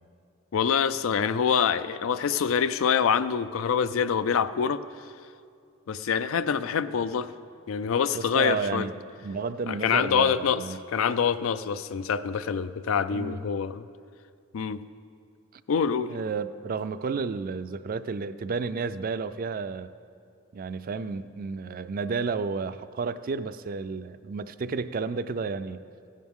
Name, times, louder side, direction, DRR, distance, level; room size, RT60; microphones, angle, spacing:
voice 1, 0.5-4.8 5.9-7.3 7.7-8.9 9.7-10.6 10.9-13.8 14.5-14.8 15.7-16.1, left 7 dB, 85° left, 13 dB, 0.4 m, -25 dB
voice 2, 8.1-8.9 9.2-10.8 13.1-13.4 15.5-15.6 16.1-19.9 20.5-25.8, right 4 dB, 45° right, 13 dB, 0.4 m, -31 dB
15.5 x 10.5 x 3.7 m, 2.3 s
head